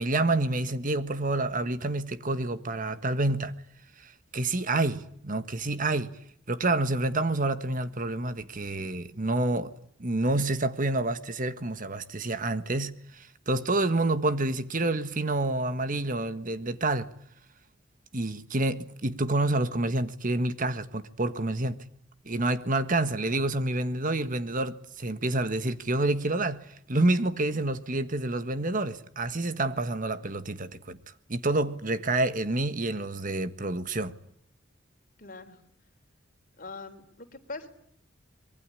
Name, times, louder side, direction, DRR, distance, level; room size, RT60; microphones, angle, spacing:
voice 1, 0.0-3.5 4.0-6.2 6.5-9.7 10.0-17.1 18.1-21.8 22.2-31.0 31.3-34.1, right 2 dB, 45° right, 1.5 m, -28 dB
voice 2, 35.2-35.6 36.6-37.7, left 3 dB, 45° left, 3.8 m, -42 dB
25.0 x 23.0 x 10.0 m
head